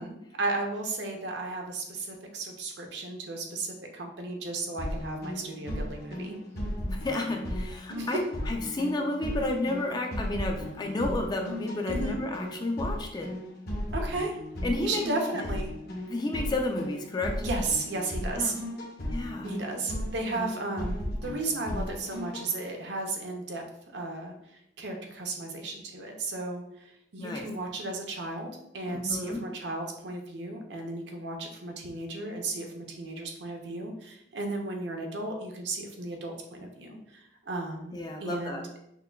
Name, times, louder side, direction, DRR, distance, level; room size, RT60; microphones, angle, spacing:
voice 1, 0.0-6.4 7.9-8.1 11.9-12.2 13.9-14.4 14.8-15.7 17.4-18.6 19.4-23.6 23.9-38.6, right 2 dB, 65° right, 2 dB, 0.6 m, -34 dB
sound 1, 4.8-22.5, equal, 55° left, 0.9 m, -35 dB
voice 2, 6.8-13.3 14.6-15.0 16.1-17.3 18.4-18.5 19.1-19.5 27.2-27.4 28.9-29.4 37.9-38.6, left 2 dB, 20° left, 2 dB, 0.4 m, -31 dB
5.6 x 2.2 x 2.2 m, 0.80 s
head